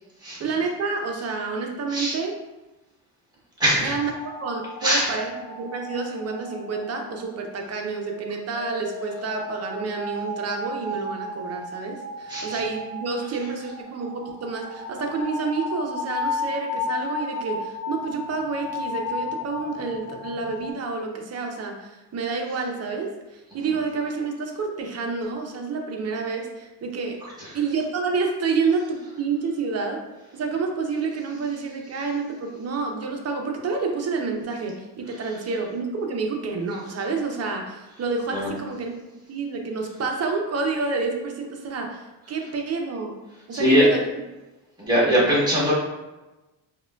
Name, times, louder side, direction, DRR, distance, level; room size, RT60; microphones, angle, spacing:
voice 1, 0.4-2.4 3.8-4.1 4.4-27.2 27.5-30.0 30.3-39.0 39.3-43.1 43.5-44.1 45.0-45.2, right 4 dB, 40° right, 3 dB, 0.5 m, -29 dB
voice 2, 3.6-3.9 4.8-5.1 12.3-12.6 38.3-38.5 43.5-43.8 44.8-45.7, equal, 10° right, -7 dB, 1.1 m, -21 dB
sound 1, 4.0-20.7, left 3 dB, 45° left, 0.6 m, -34 dB
4.7 x 2.2 x 2.2 m, 1.1 s
cardioid pair, 130°, 41 cm